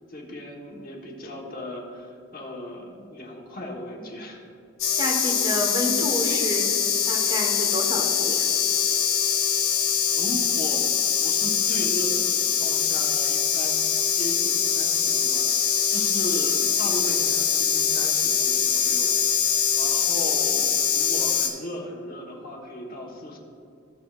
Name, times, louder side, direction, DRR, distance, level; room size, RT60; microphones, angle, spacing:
voice 1, 0.1-4.4 10.1-10.9 11.2-13.8 14.1-19.1 19.7-23.4, equal, 45° left, 0 dB, 1.2 m, -36 dB
sound 1, 4.8-21.5, left 7 dB, 90° left, 1.3 m, -23 dB
voice 2, 5.0-6.7 7.1-8.5, equal, 20° right, 0 dB, 1.2 m, -29 dB
15.0 x 6.9 x 2.4 m, 2.4 s
head